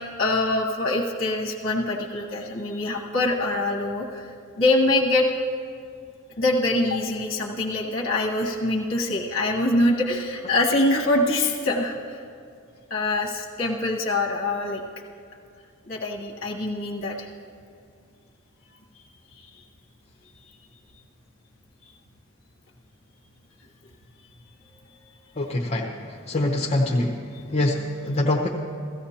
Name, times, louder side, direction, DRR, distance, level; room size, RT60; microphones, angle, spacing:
voice 1, 0.2-4.3 4.6-5.3 6.4-11.9 12.9-14.8 15.8-17.3 19.3-19.5, left 2 dB, 45° left, -2 dB, 1.1 m, -24 dB
voice 2, 25.4-25.9 26.3-27.2 27.5-28.5, left 1 dB, 30° left, -2 dB, 0.8 m, -24 dB
17.0 x 14.5 x 2.9 m, 2.3 s
head